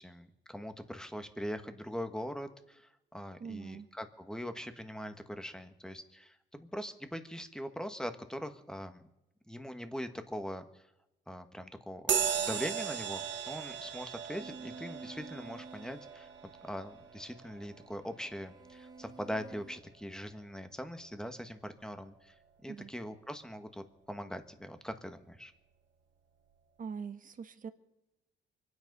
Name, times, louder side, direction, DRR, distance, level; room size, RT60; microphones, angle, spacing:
voice 1, 0.0-9.0 9.5-10.8 11.3-16.3 16.6-22.3 22.6-25.5, equal, 5° left, 8 dB, 1.6 m, -42 dB
voice 2, 3.4-3.9 22.7-22.9 26.8-27.7, right 6 dB, 45° right, 10 dB, 1.2 m, -42 dB
sound 1, 12.1-20.0, right 8 dB, 65° right, 1.6 m, -38 dB
sound 2, 14.4-19.8, right 4 dB, 20° right, 0.8 m, -52 dB
24.5 x 9.6 x 5.5 m, 0.92 s
cardioid pair, 90°, 20 cm